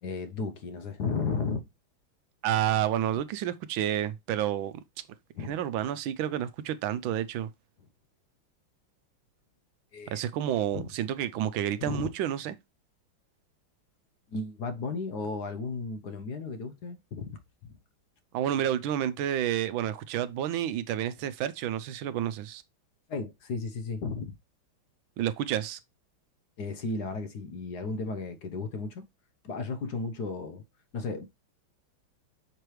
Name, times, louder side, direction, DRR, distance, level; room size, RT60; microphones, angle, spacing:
voice 1, 0.0-1.7 3.1-3.2 5.4-5.6 9.9-10.2 10.7-10.9 11.8-12.1 14.3-17.4 23.1-24.3 26.6-29.0 29.4-30.6 30.9-31.3, left 4 dB, 60° left, 1.3 m, -34 dB
voice 2, 2.4-4.7 5.5-7.5 10.1-12.5 18.3-22.6 25.2-25.8, right 11 dB, 80° right, 1.3 m, -30 dB
6.7 x 4.6 x 3.2 m
omnidirectional pair, 2.2 m